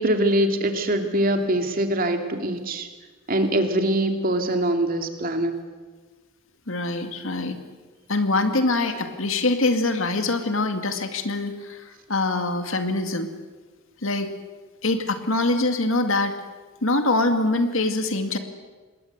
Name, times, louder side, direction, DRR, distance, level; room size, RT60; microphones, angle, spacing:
voice 1, 0.0-2.9 3.3-5.5, right 1 dB, 40° right, 5 dB, 2.7 m, -23 dB
voice 2, 6.7-7.6 8.1-11.8 12.1-13.3 14.0-14.3 14.8-16.3 16.8-18.4, left 2 dB, 65° left, 7 dB, 2.3 m, -24 dB
27.0 x 21.0 x 8.1 m, 1.4 s
head